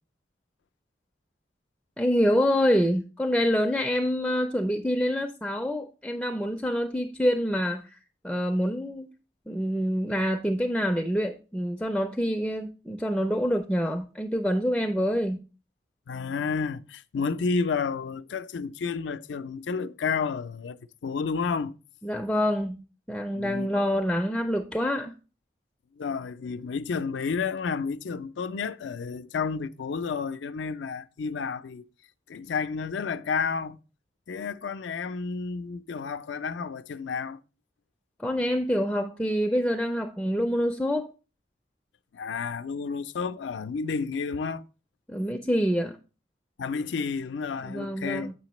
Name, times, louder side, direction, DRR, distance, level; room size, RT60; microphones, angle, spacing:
voice 1, 2.0-7.9 8.2-9.1 9.5-15.4 22.0-22.8 23.1-25.1 38.2-41.1 45.1-46.0 47.6-48.3, equal, 5° left, 0.4 m, -26 dB
voice 2, 16.1-20.8 21.0-21.8 23.3-23.7 26.0-31.9 32.3-33.8 34.3-37.4 42.1-44.6 46.6-48.3, left 5 dB, 85° left, 0.4 m, -31 dB
7.6 x 5.7 x 3.0 m
head